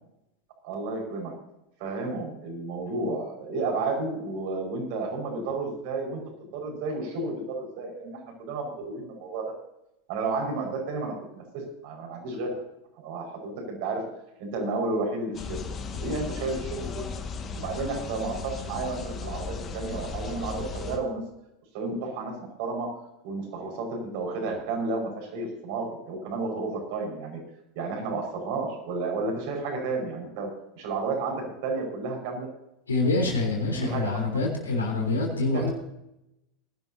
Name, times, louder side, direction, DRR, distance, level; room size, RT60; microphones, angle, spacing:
voice 1, 0.6-1.3 1.8-6.2 6.5-9.5 10.1-12.6 13.0-14.0 14.4-15.6 16.0-17.1 17.5-21.2 21.7-22.3 22.6-22.9 23.2-27.4 27.8-30.5 30.8-32.5 33.7-34.3 35.5-35.7, right 3 dB, 55° right, 1 dB, 5.3 m, -32 dB
sound 1, 15.3-21.0, left 4 dB, 30° left, 1.7 m, -36 dB
voice 2, 32.9-35.7, left 3 dB, 80° left, 1 dB, 3.6 m, -26 dB
20.0 x 11.5 x 2.8 m, 0.84 s
figure-of-eight pair, 85°, 0 cm